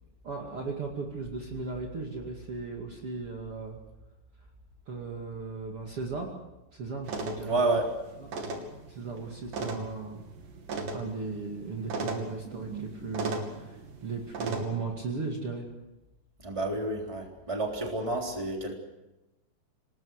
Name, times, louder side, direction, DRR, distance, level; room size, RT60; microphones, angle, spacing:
voice 1, 0.2-3.8 4.9-6.3 6.7-7.8 8.9-10.2 10.9-15.7, right 4 dB, 45° right, 0 dB, 3.0 m, -36 dB
sound 1, 7.0-14.6, right 3 dB, 75° right, 4.2 m, -37 dB
voice 2, 7.4-7.9 16.4-18.8, right 2 dB, 10° right, 1 dB, 3.3 m, -29 dB
28.0 x 19.5 x 6.5 m, 1.0 s
omnidirectional pair, 3.9 m